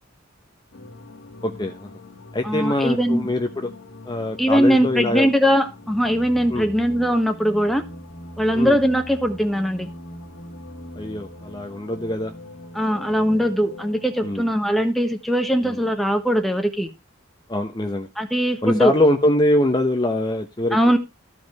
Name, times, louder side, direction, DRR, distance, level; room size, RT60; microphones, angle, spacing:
sound 1, 0.7-14.3, left 1 dB, 70° left, 1.8 m, -41 dB
voice 1, 1.4-1.9 2.3-3.7 4.0-5.3 6.5-6.7 8.5-8.8 11.0-12.3 14.2-14.5 15.6-15.8 17.5-18.1 18.6-20.8, left 1 dB, 20° left, 4 dB, 0.9 m, -23 dB
voice 2, 2.4-3.3 4.4-7.8 8.4-9.9 12.7-16.9 18.2-18.9 20.7-21.0, equal, ahead, 5 dB, 1.3 m, -20 dB
14.0 x 5.3 x 4.7 m, 0.26 s
head